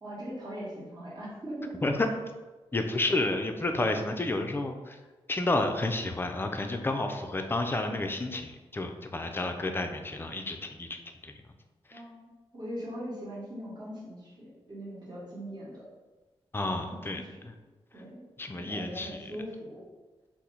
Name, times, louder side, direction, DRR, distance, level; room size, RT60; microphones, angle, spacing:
voice 1, 0.0-1.8 11.9-15.8 16.8-17.5 17.9-18.2 18.5-19.8, equal, 45° right, -7 dB, 1.2 m, -41 dB
voice 2, 2.7-5.0 5.3-11.3 11.9-12.0 16.5-17.5 18.4-19.3, left 2 dB, 20° left, 5 dB, 0.4 m, -31 dB
2.9 x 2.0 x 3.7 m, 1.2 s
cardioid pair, 60°, 10 cm